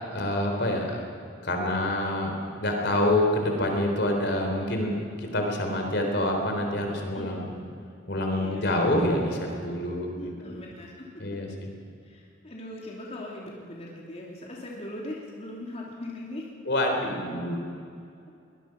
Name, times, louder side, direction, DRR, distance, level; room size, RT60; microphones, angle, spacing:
voice 1, 0.1-1.0 1.4-2.3 2.6-7.5 8.1-10.3 11.2-11.5 16.7-17.6, left 1 dB, 60° left, 2 dB, 3.7 m, -26 dB
voice 2, 8.3-8.7 10.1-11.4 12.0-16.5, left 1 dB, 35° left, -3 dB, 3.1 m, -40 dB
23.0 x 20.0 x 6.0 m, 2.4 s
head